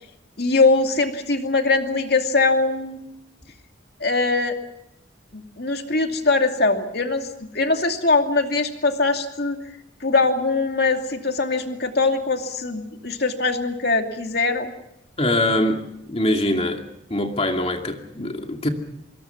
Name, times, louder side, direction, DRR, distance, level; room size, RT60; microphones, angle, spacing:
voice 1, 0.4-3.1 4.0-4.6 5.3-9.6 10.0-14.7, left 3 dB, 55° left, 5 dB, 2.6 m, -22 dB
voice 2, 15.2-16.8 17.1-18.7, left 1 dB, 30° left, 4 dB, 2.5 m, -23 dB
26.0 x 22.0 x 5.9 m, 0.82 s
head